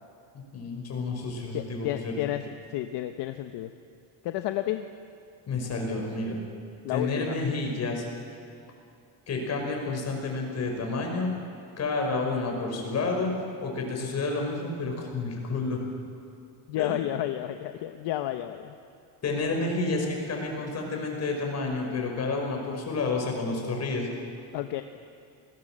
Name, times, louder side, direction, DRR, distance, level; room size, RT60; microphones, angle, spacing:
voice 1, 0.5-2.1 5.5-6.4 6.9-8.1 9.3-11.3 11.8-13.3 13.6-15.8 16.8-16.9 19.2-24.1, left 3 dB, 35° left, 1 dB, 5.5 m, -30 dB
voice 2, 1.5-3.7 4.2-4.9 6.8-7.4 16.7-18.8 24.5-24.8, left 13 dB, 60° left, 7 dB, 1.1 m, -31 dB
29.5 x 20.5 x 7.6 m, 2.6 s
cardioid pair, 165°, 46 cm